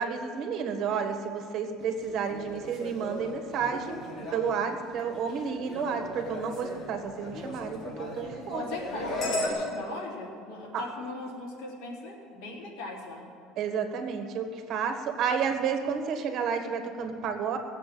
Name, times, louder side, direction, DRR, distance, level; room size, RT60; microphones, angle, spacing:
voice 1, 0.0-4.0 4.3-8.7 10.7-10.8 13.6-17.6, right 6 dB, 50° right, 6 dB, 1.5 m, -31 dB
sound 1, 1.9-9.5, left 2 dB, 35° left, 3.6 m, -37 dB
voice 2, 8.4-13.3, left 2 dB, 75° left, -2 dB, 3.6 m, -39 dB
19.0 x 8.0 x 7.8 m, 2.5 s
cardioid pair, 145°, 0 cm